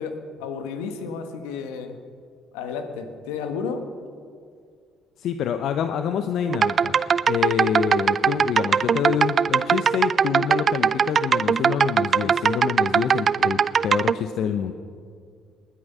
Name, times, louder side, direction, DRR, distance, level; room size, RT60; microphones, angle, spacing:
voice 1, 0.0-2.0 2.5-3.9, left 5 dB, 80° left, 7 dB, 1.3 m, -32 dB
voice 2, 5.2-7.0 7.3-14.7, left 8 dB, 65° left, 8 dB, 0.7 m, -27 dB
sound 1, 6.5-14.1, right 6 dB, 45° right, 0.3 m, -20 dB
20.0 x 10.0 x 5.6 m, 2.2 s
hypercardioid pair, 55°, 0 cm